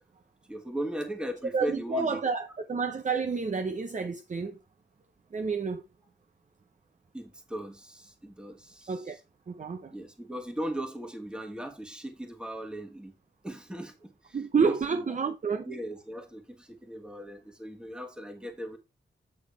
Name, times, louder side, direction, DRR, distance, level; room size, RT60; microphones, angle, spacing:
voice 1, 0.5-2.2 7.1-9.2 9.9-13.1 13.4-15.1 15.6-18.8, right 1 dB, 5° right, 1.5 m, -38 dB
voice 2, 1.5-4.6 5.3-5.8 8.9-9.2 9.5-9.9 14.3-15.7, right 5 dB, 40° right, 0.7 m, -29 dB
8.6 x 3.9 x 4.7 m
wide cardioid pair, 85°, 19 cm